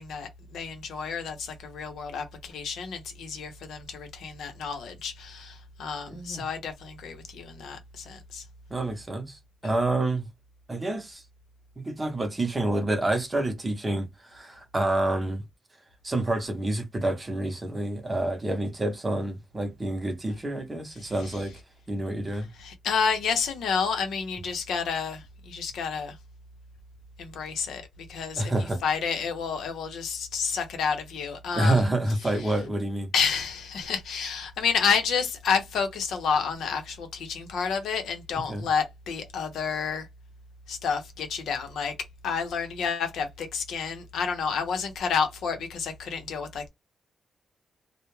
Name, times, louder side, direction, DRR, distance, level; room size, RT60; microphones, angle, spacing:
voice 1, 0.0-8.4 21.0-21.1 22.6-26.2 27.2-28.5 28.8-31.8 33.1-40.1 40.7-41.9 42.2-46.7, left 6 dB, 85° left, 0.7 m, -30 dB
voice 2, 6.1-6.4 8.7-10.3 10.7-11.2 11.8-15.4 16.0-21.5 21.9-22.5 28.4-28.8 31.5-33.1 38.5-38.7, right 1 dB, 20° right, 0.7 m, -28 dB
2.2 x 2.1 x 3.0 m
wide cardioid pair, 150°, 0 cm